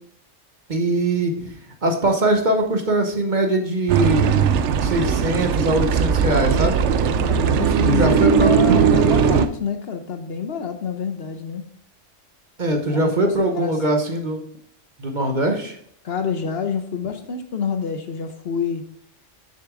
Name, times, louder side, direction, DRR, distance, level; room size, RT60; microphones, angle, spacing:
voice 1, 0.7-1.3 1.8-4.3 4.8-6.8 7.8-8.6 12.6-14.4 15.0-15.8, right 1 dB, 40° right, 4 dB, 1.0 m, -21 dB
sound 1, 3.9-9.5, right 7 dB, 70° right, 0.9 m, -18 dB
voice 2, 7.2-11.6 12.8-13.7 16.0-18.8, left 6 dB, 60° left, 7 dB, 0.9 m, -27 dB
6.9 x 6.6 x 3.6 m, 0.63 s
omnidirectional pair, 1.3 m